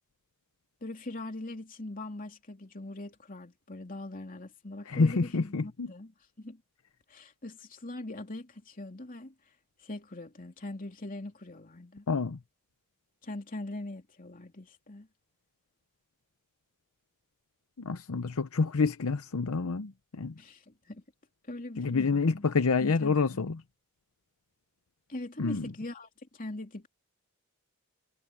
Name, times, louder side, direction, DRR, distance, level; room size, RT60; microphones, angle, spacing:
voice 1, 0.8-6.1 6.4-6.6 7.1-9.3 9.8-12.0 13.2-15.1 20.4-21.0 21.5-22.5 22.8-23.5 25.1-26.9, left 2 dB, 40° left, 3.1 m, -41 dB
voice 2, 4.9-5.9 12.1-12.4 17.8-20.3 21.8-23.6 25.4-25.7, left 4 dB, 70° left, 0.7 m, -28 dB
head